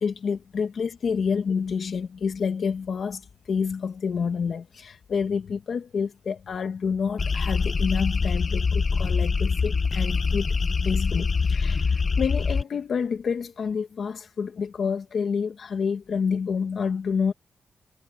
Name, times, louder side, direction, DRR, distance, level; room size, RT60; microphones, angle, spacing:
voice 1, 0.0-10.6 10.8-17.3, left 6 dB, 60° left, 1.4 m, -28 dB
sound 1, 7.2-12.6, left 4 dB, 35° left, 1.3 m, -24 dB
wide cardioid pair, 130°, 0 cm